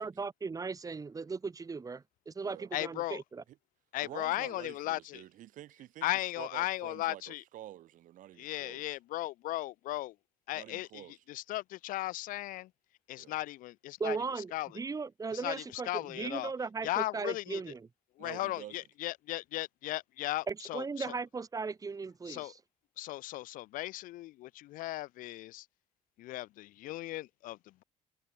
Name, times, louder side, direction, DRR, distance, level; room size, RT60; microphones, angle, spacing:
voice 1, 0.0-3.4 14.0-17.9 20.5-22.6, right 4 dB, 25° right, 1.6 m, -37 dB
voice 2, 2.7-3.2 3.9-5.2 6.0-7.4 8.4-10.1 10.5-11.0 11.3-12.7 13.1-14.2 14.5-14.7 15.4-16.5 16.8-17.6 18.2-20.8 22.3-22.5 23.0-25.6 26.2-27.8, left 16 dB, 80° left, 1.7 m, -36 dB
voice 3, 4.0-9.0 10.5-11.2 13.2-13.3 18.2-18.9, right 13 dB, 70° right, 3.5 m, -49 dB
cardioid pair, 95°, 14 cm